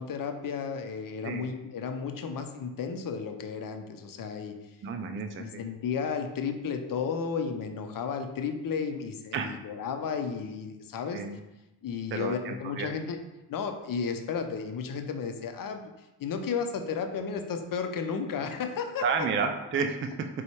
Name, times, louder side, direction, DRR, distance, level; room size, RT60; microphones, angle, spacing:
voice 1, 0.0-4.5 5.1-11.2 11.8-13.2 13.5-19.3, left 6 dB, 45° left, 6 dB, 0.7 m, -33 dB
voice 2, 4.8-5.6 9.3-9.5 11.1-11.4 12.1-12.9 19.0-20.3, right 5 dB, 25° right, 6 dB, 0.4 m, -31 dB
4.0 x 2.4 x 4.5 m, 0.99 s
hypercardioid pair, 55°, 48 cm